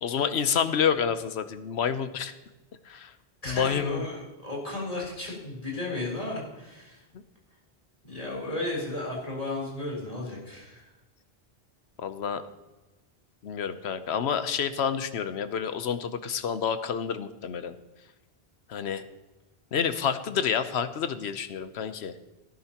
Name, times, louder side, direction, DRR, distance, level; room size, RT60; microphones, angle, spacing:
voice 1, 0.0-2.3 2.8-3.1 3.5-4.0 12.0-12.4 13.4-17.8 18.7-19.0 19.7-22.1, left 7 dB, 90° left, 11 dB, 1.0 m, -28 dB
voice 2, 3.4-7.0 8.0-10.9, left 2 dB, 35° left, -4 dB, 3.9 m, -34 dB
17.5 x 10.5 x 2.9 m, 1.1 s
omnidirectional pair, 1.1 m